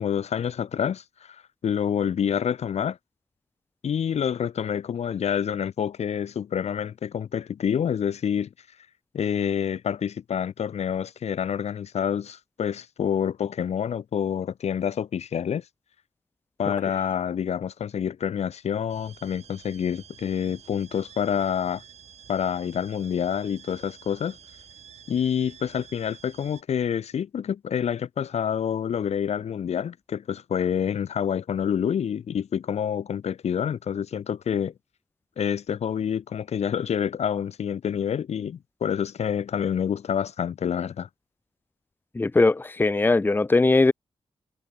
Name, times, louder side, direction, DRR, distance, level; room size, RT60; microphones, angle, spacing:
voice 1, 0.0-3.0 3.8-8.5 9.1-15.6 16.6-21.8 22.3-24.4 25.1-34.7 35.4-41.1, left 8 dB, 85° left, 2.4 m, -27 dB
sound 1, 18.9-26.6, right 8 dB, 85° right, 7.9 m, -49 dB
voice 2, 42.1-43.9, left 3 dB, 20° left, 0.9 m, -20 dB
wide cardioid pair, 150°, 11 cm